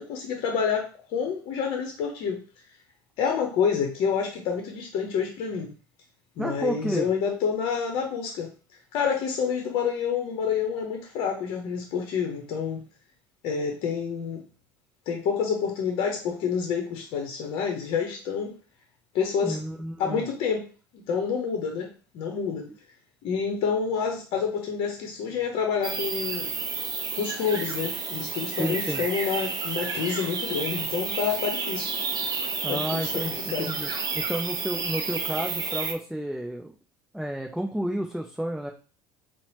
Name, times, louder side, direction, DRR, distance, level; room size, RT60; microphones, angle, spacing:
voice 1, 0.0-2.4 3.2-5.7 6.4-8.5 8.9-12.8 13.4-14.4 15.1-18.5 19.1-19.6 20.0-20.6 21.1-21.9 22.1-22.6 23.2-26.5 27.2-31.9 32.7-33.2 33.5-33.8, left 6 dB, 55° left, 2 dB, 0.7 m, -28 dB
voice 2, 6.4-7.1 19.4-20.3 28.6-29.0 32.6-33.9 34.1-36.7 37.1-38.7, right 1 dB, ahead, 3 dB, 0.4 m, -31 dB
sound 1, 25.8-35.9, right 4 dB, 35° right, 0.7 m, -31 dB
3.9 x 2.0 x 3.0 m, 0.36 s
hypercardioid pair, 70°, 11 cm